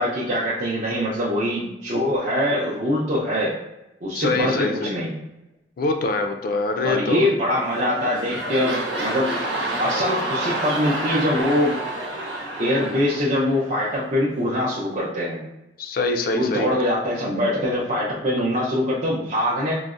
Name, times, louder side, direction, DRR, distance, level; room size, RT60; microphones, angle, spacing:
voice 1, 0.0-3.6 4.0-5.2 6.8-9.4 9.8-11.7 12.6-15.4 16.3-19.7, left 1 dB, 40° right, -7 dB, 0.5 m, -23 dB
voice 2, 4.1-4.9 5.8-7.3 15.8-16.8, left 3 dB, 55° left, 5 dB, 0.3 m, -24 dB
sound 1, 7.5-14.1 14.6-14.7, right 1 dB, 85° right, 0.9 m, -29 dB
3.8 x 2.1 x 2.4 m, 0.93 s
head